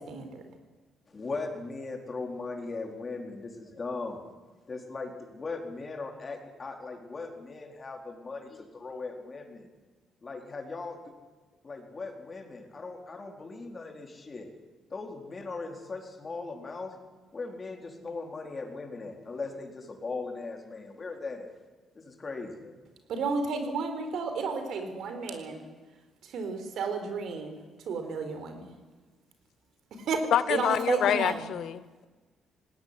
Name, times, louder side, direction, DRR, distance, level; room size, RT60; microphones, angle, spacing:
voice 1, 0.1-0.4 23.1-25.6 26.3-27.6 27.9-28.7 29.9-30.2 30.5-31.5, right 4 dB, 75° right, 7 dB, 4.2 m, -32 dB
voice 2, 1.1-4.2 4.7-9.7 10.2-11.0 11.6-14.5 14.9-16.9 17.3-21.5 21.9-22.7, left 3 dB, 35° left, 3 dB, 4.2 m, -39 dB
voice 3, 30.3-32.0, left 10 dB, 75° left, 16 dB, 0.9 m, -27 dB
19.0 x 18.0 x 9.9 m, 1.3 s
cardioid pair, 90°, 0 cm